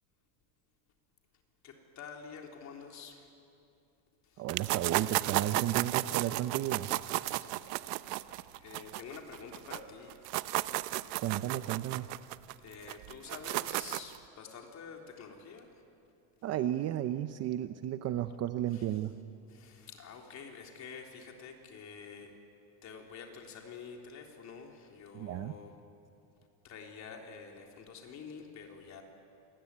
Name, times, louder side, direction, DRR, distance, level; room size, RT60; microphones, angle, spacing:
voice 1, 1.6-3.3 4.2-4.5 7.3-7.7 8.6-10.2 12.6-15.7 18.7-19.0 19.5-22.4 22.8-25.8 26.6-29.0, left 6 dB, 35° left, 2 dB, 3.7 m, -48 dB
voice 2, 4.4-6.9 11.2-12.1 16.4-19.1 25.1-25.5, right 12 dB, 30° right, 11 dB, 0.7 m, -33 dB
sound 1, 4.5-9.8 10.1-14.2, right 18 dB, 70° right, 0.9 m, -33 dB
27.0 x 21.0 x 9.8 m, 2.7 s
supercardioid pair, 145°, 50 cm